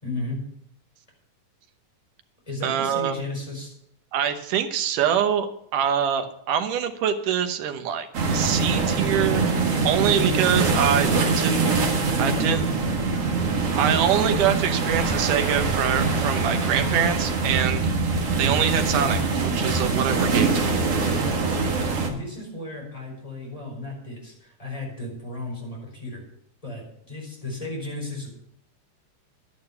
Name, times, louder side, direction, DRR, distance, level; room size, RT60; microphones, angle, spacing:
voice 1, 0.0-0.4 2.5-3.7 9.9-11.5 11.8-12.6 21.4-26.2 26.6-28.3, left 2 dB, 10° left, -2 dB, 4.9 m, -35 dB
voice 2, 2.6-3.2 4.1-8.1 8.3-9.4 9.8-11.1 11.4-11.6 12.2-12.7 13.7-17.8 18.4-20.8, right 9 dB, 85° right, 7 dB, 2.6 m, -24 dB
sound 1, 8.1-22.1, right 4 dB, 55° right, 2.7 m, -23 dB
11.5 x 11.0 x 5.7 m, 0.72 s
omnidirectional pair, 3.6 m